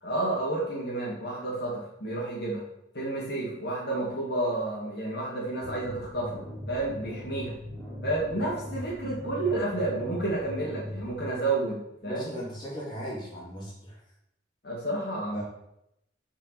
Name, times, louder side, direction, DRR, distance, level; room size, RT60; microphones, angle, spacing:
voice 1, 0.0-2.6 2.9-7.5 8.0-12.3 14.6-15.4, right 2 dB, 60° left, -5 dB, 2.6 m, -30 dB
sound 1, 5.6-11.3, left 1 dB, ahead, 3.7 m, -40 dB
voice 2, 12.0-14.0 15.3-15.4, equal, 25° left, -6 dB, 3.5 m, -37 dB
6.3 x 5.6 x 7.0 m, 0.80 s
head